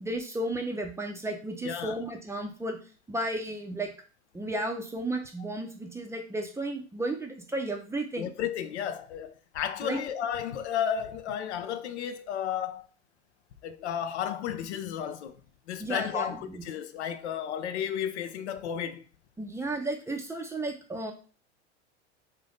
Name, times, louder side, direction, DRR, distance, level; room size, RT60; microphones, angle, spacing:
voice 1, 0.0-2.8 3.1-3.9 4.3-8.3 9.8-10.0 15.8-16.6 19.4-21.1, right 1 dB, 10° right, 0.5 m, -33 dB
voice 2, 1.6-2.0 8.2-12.9 13.6-15.4 15.7-19.0, left 9 dB, 75° left, 0.5 m, -33 dB
2.6 x 2.6 x 3.5 m
hypercardioid pair, 85°, 34 cm